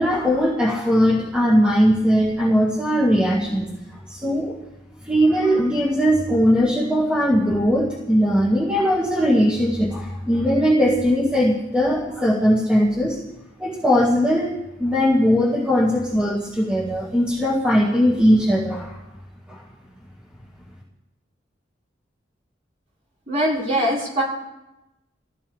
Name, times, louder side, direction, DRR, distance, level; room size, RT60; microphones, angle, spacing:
voice 1, 0.0-3.7 4.1-4.5 5.0-13.2 13.6-19.0 19.5-19.6, equal, 5° right, -5 dB, 2.2 m, -19 dB
voice 2, 23.3-24.2, equal, 40° right, -4 dB, 6.3 m, -22 dB
24.0 x 16.0 x 3.6 m, 0.97 s
head